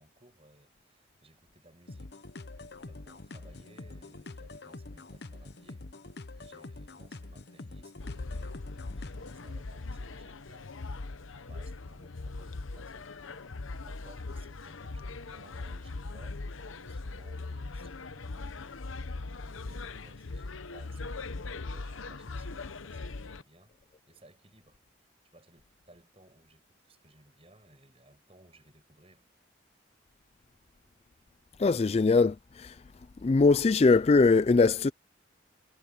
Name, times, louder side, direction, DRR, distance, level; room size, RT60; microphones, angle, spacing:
voice 1, 0.0-2.2 2.9-10.7 11.3-13.1 13.7-18.7 19.3-23.8 24.1-24.8 25.3-29.2, right 1 dB, 30° right, 7.0 m, -60 dB
sound 1, 1.9-9.5, left 2 dB, 55° left, 1.0 m, -46 dB
sound 2, 8.0-23.4, left 3 dB, 85° left, 0.9 m, -40 dB
voice 2, 31.6-32.7 33.2-34.9, left 4 dB, 30° left, 0.3 m, -22 dB
head